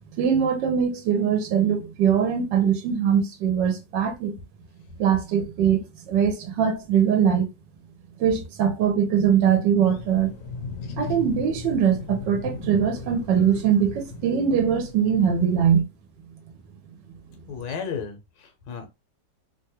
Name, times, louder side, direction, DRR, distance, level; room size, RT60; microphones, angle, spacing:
voice 1, 0.2-4.4 5.0-7.5 8.2-10.3 11.0-15.9, right 8 dB, 90° right, 1.4 m, -22 dB
sound 1, 9.8-15.8, left 4 dB, 65° left, 0.8 m, -37 dB
voice 2, 17.5-18.9, left 6 dB, 85° left, 1.5 m, -34 dB
3.4 x 2.3 x 2.8 m
omnidirectional pair, 1.9 m